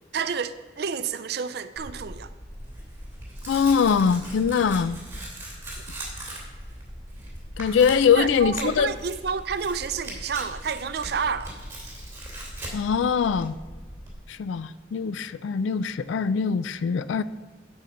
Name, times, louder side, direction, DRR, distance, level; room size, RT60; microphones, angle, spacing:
voice 1, 0.1-2.3 8.1-11.5, right 6 dB, 55° right, 0.4 m, -29 dB
Tearing, 1.8-14.1, right 1 dB, 10° right, 2.5 m, -39 dB
voice 2, 3.5-5.0 7.6-8.9 12.7-13.6 14.3-17.2, left 6 dB, 80° left, 0.3 m, -22 dB
9.2 x 5.5 x 7.6 m
head